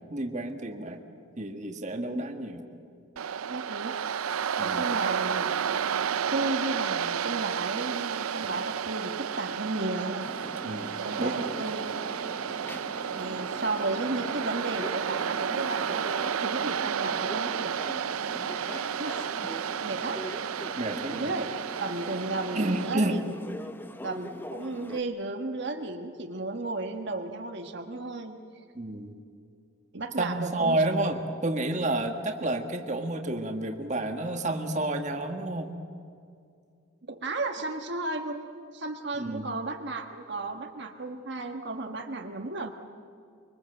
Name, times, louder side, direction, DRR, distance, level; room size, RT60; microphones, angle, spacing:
voice 1, 0.1-1.0 1.4-2.6 4.6-4.9 10.6-11.4 20.8-21.3 22.5-23.2 28.7-29.1 30.2-35.7 39.1-39.5, right 2 dB, 35° right, 4 dB, 1.5 m, -30 dB
Waves surf, 3.2-22.9, right 7 dB, 80° right, 0.5 m, -31 dB
voice 2, 3.5-4.0 4.6-5.5 6.3-10.3 11.0-11.9 13.1-17.8 19.0-19.3 19.8-20.3 21.1-21.5 21.8-23.2 24.0-28.7 29.9-30.8 37.1-42.7, right 2 dB, 55° right, 4 dB, 1.4 m, -34 dB
sound 1, 10.2-25.0, left 1 dB, 10° left, 0.7 m, -42 dB
24.5 x 24.0 x 7.8 m, 2.4 s
head